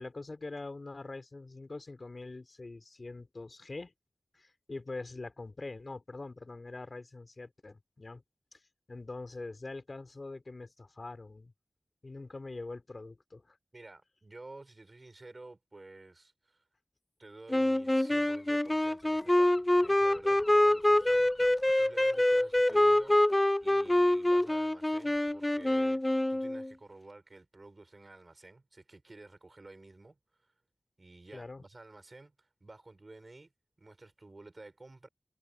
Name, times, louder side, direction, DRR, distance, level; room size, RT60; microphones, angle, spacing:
voice 1, 0.0-3.9 4.3-8.2 8.5-11.5 12.0-13.6 31.3-31.6, left 3 dB, 55° left, 3.7 m, -44 dB
voice 2, 13.7-16.6 17.2-23.2 23.6-30.5 31.0-33.5 33.8-35.1, right 2 dB, 45° right, 6.8 m, -52 dB
sound 1, 17.5-26.7, left 1 dB, 20° left, 0.3 m, -26 dB
Gull seagull / Wind, 18.3-25.6, left 2 dB, 40° left, 1.5 m, -57 dB
cardioid pair, 45°, 0 cm